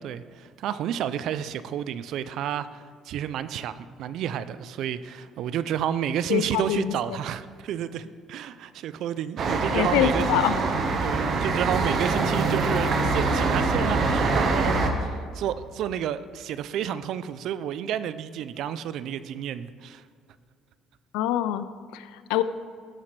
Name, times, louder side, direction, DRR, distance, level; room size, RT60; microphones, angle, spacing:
voice 1, 0.0-10.4 11.0-20.0, right 10 dB, 70° right, 14 dB, 0.4 m, -31 dB
voice 2, 6.3-7.2 9.7-10.6 21.1-22.4, left 12 dB, 90° left, 13 dB, 0.3 m, -25 dB
sound 1, 9.4-14.9, right 3 dB, 55° right, 1.1 m, -24 dB
14.0 x 5.8 x 3.2 m, 2.1 s
supercardioid pair, 85°, 0 cm